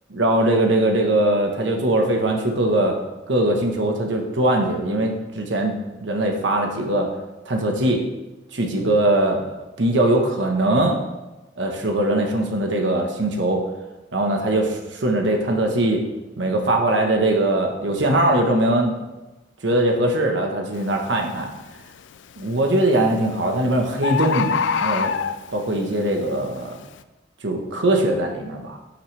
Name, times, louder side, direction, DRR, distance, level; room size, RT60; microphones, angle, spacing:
voice 1, 0.1-3.0 3.3-7.1 7.5-8.0 8.5-11.0 11.6-13.6 14.1-16.0 16.4-18.9 19.6-21.5 22.4-25.1 25.5-26.7 27.4-28.8, right 1 dB, 80° right, 2 dB, 1.2 m, -21 dB
Bird, 20.7-21.0 21.5-22.0 23.0-23.1 23.4-23.5 23.7-23.8 24.0-25.7 26.3-26.4, left 6 dB, 90° left, 0.4 m, -24 dB
11.5 x 6.2 x 3.4 m, 1.1 s
head